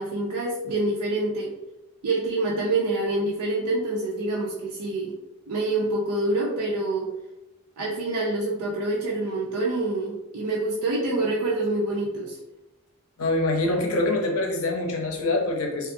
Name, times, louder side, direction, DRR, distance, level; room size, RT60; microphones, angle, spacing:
voice 1, 0.0-1.5 2.0-5.1 5.5-7.1 7.8-12.4, right 2 dB, 85° right, -3 dB, 0.4 m, -26 dB
voice 2, 13.2-15.9, left 2 dB, 80° left, 1 dB, 0.6 m, -25 dB
2.5 x 2.3 x 2.6 m, 0.99 s
head